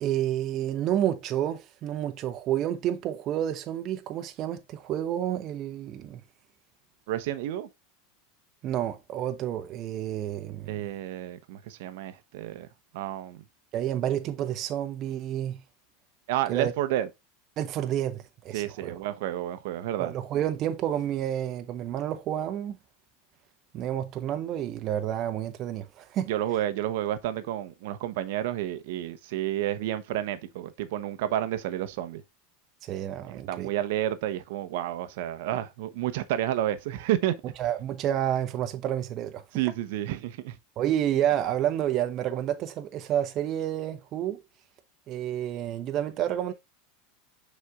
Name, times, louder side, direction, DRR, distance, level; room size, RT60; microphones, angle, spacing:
voice 1, 0.0-6.2 8.6-10.9 13.7-15.6 16.5-16.7 17.6-19.0 20.0-22.8 23.7-26.3 32.8-33.7 37.6-39.4 40.8-44.4 45.1-46.5, right 11 dB, 45° right, 0.9 m, -29 dB
voice 2, 7.1-7.7 10.7-12.7 12.9-13.4 16.3-17.1 18.5-20.1 26.3-32.2 33.3-37.3 39.5-40.6, right 13 dB, 70° right, 0.9 m, -30 dB
6.7 x 4.2 x 3.7 m
supercardioid pair, 110°, 0 cm